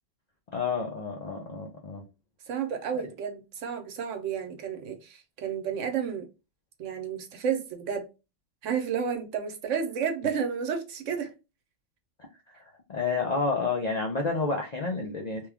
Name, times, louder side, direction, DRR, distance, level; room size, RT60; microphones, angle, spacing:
voice 1, 0.5-2.0 12.2-12.6 12.9-15.5, left 4 dB, 50° left, 0.5 m, -30 dB
voice 2, 2.5-6.3 6.8-8.1 8.6-11.3, right 7 dB, 80° right, 1.1 m, -31 dB
3.0 x 2.3 x 3.4 m
omnidirectional pair, 1.3 m